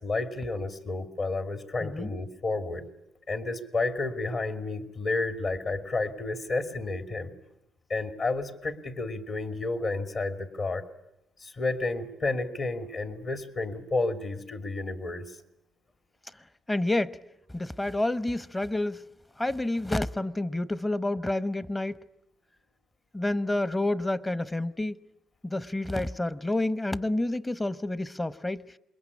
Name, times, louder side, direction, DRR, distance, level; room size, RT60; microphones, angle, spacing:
voice 1, 0.0-2.9 3.3-7.3 7.9-10.8 11.4-15.2, left 3 dB, 50° left, 2.7 m, -31 dB
voice 2, 16.7-17.2 17.5-19.0 19.4-22.0 23.1-25.0 25.4-28.7, left 1 dB, 15° left, 1.0 m, -29 dB
27.5 x 22.0 x 9.8 m
cardioid pair, 90°, 0 cm